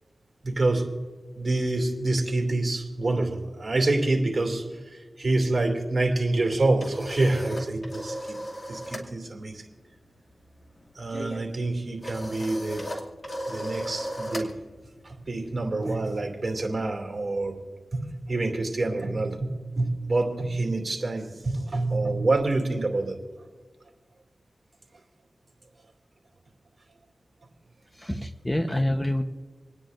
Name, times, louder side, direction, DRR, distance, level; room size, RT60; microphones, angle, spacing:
voice 1, 0.4-0.9 1.3-8.4 8.7-9.7 10.9-12.8 13.5-14.5 15.0-17.6 17.9-23.2, right 2 dB, 55° right, 2 dB, 2.7 m, -27 dB
sound 1, 6.8-9.1 9.4-9.7 9.9-16.6, equal, 40° left, 2.5 m, -37 dB
voice 2, 27.9-29.2, left 1 dB, 10° left, 6 dB, 1.0 m, -27 dB
28.5 x 9.8 x 2.6 m, 1.4 s
cardioid pair, 45°, 0 cm